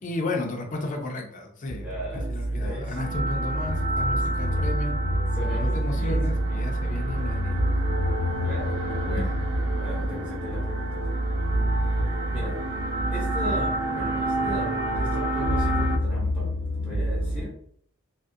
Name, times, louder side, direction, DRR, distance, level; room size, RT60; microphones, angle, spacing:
voice 1, 0.0-2.0 2.3-5.0 5.5-7.8 9.1-9.3, left 2 dB, 40° left, 3 dB, 0.4 m, -33 dB
sound 1, 1.7-17.4, right 1 dB, 85° left, 0.8 m, -28 dB
voice 2, 1.7-3.0 5.3-6.4 8.4-9.3 9.7-11.1 11.7-12.6 13.1-16.5 16.8-17.6, equal, 5° right, -7 dB, 0.7 m, -38 dB
sound 2, 2.9-16.0, right 1 dB, 75° right, 0.4 m, -31 dB
2.3 x 2.1 x 2.6 m, 0.64 s
head